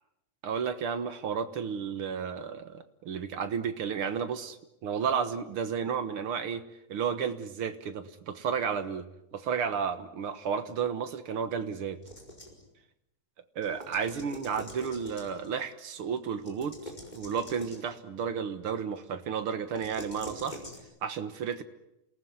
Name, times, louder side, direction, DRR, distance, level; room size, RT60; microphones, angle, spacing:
voice 1, 0.4-4.6 4.8-6.6 6.9-9.1 9.3-12.0 13.6-20.6 21.0-21.6, right 7 dB, 55° right, 10 dB, 1.9 m, -32 dB
sound 1, 12.0-12.7 13.6-15.5 16.4-17.9 19.7-20.8, left 1 dB, 15° left, 4.7 m, -45 dB
28.0 x 19.0 x 9.5 m, 0.87 s
omnidirectional pair, 3.4 m